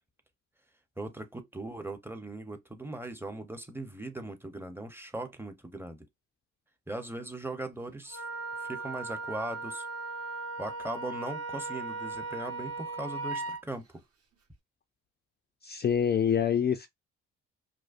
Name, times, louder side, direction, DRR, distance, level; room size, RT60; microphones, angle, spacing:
voice 1, 1.0-6.1 6.9-8.2 8.6-9.9 10.6-13.8, right 2 dB, 10° right, 0.7 m, -39 dB
Wind instrument woodwind instrument, 8.1-13.6, right 3 dB, 50° right, 1.3 m, -37 dB
voice 2, 15.6-16.9, left 8 dB, 35° left, 0.4 m, -26 dB
4.9 x 2.0 x 2.5 m
cardioid pair, 90°, 30 cm